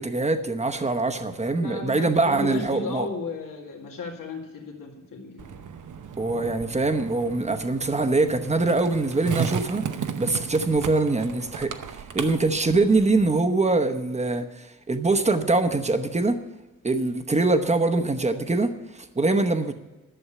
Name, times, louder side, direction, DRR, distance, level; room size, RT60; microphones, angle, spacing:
voice 1, 0.0-3.1 6.2-9.8 10.2-11.7 12.1-16.4 16.8-19.7, right 3 dB, 20° right, 7 dB, 1.0 m, -23 dB
voice 2, 1.6-5.5, left 3 dB, 80° left, -1 dB, 2.1 m, -34 dB
Skateboard, 5.4-13.4, right 7 dB, 65° right, 0.9 m, -35 dB
11.0 x 7.1 x 8.5 m, 1.1 s
wide cardioid pair, 110°, 33 cm